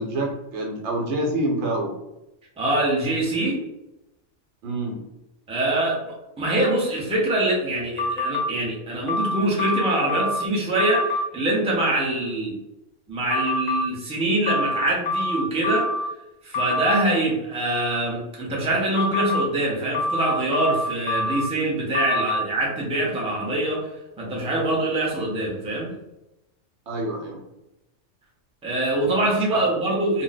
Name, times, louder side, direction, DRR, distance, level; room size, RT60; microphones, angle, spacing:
voice 1, 0.0-1.9 4.6-5.0 26.9-27.4 29.2-29.6, right 1 dB, 70° right, 0 dB, 1.0 m, -27 dB
voice 2, 2.6-3.6 5.5-12.6 13.1-15.9 16.4-23.9 24.2-25.9 28.6-30.2, right 1 dB, 5° right, -4 dB, 0.5 m, -24 dB
sound 1, 8.0-8.5 9.1-10.4 10.8-11.2 13.3-13.8 14.5-16.1 16.5-17.0 19.0-19.4 19.9-21.5 21.9-22.4, left 2 dB, 60° left, 0.7 m, -25 dB
2.5 x 2.1 x 3.9 m, 0.94 s
omnidirectional pair, 1.3 m